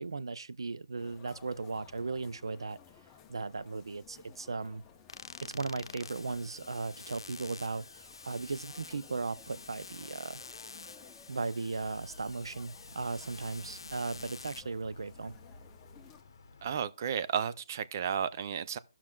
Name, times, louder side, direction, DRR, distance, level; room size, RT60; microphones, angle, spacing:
voice 1, 0.0-2.8 3.3-4.8 5.4-10.4 11.3-15.3, right 3 dB, 90° right, 0.5 m, -37 dB
sound 1, 1.0-16.2, left 7 dB, 15° left, 0.7 m, -58 dB
sound 2, 5.1-14.6, left 4 dB, 90° left, 0.7 m, -48 dB
sound 3, 11.7-16.9, left 2 dB, 55° left, 0.9 m, -54 dB
voice 2, 16.6-18.8, right 8 dB, 45° right, 0.5 m, -33 dB
15.5 x 5.9 x 2.3 m
hypercardioid pair, 160°, 2 cm